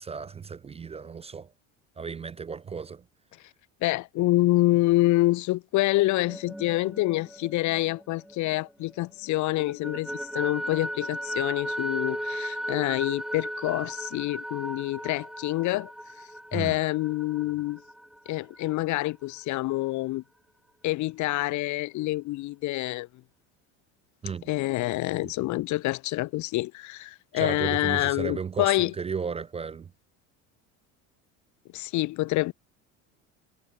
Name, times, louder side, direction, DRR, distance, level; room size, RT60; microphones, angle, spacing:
voice 1, 0.0-1.5 2.0-3.0 16.5-16.8 24.2-24.4 25.2-25.3 27.3-29.9, right 6 dB, 15° right, 0.3 m, -34 dB
voice 2, 3.8-15.9 16.5-17.8 18.3-20.2 20.8-23.1 24.5-28.9 31.7-32.5, left 19 dB, 50° left, 0.5 m, -27 dB
sound 1, 6.1-9.0 9.3-18.7, equal, ahead, 1.2 m, -36 dB
supercardioid pair, 90°, 39 cm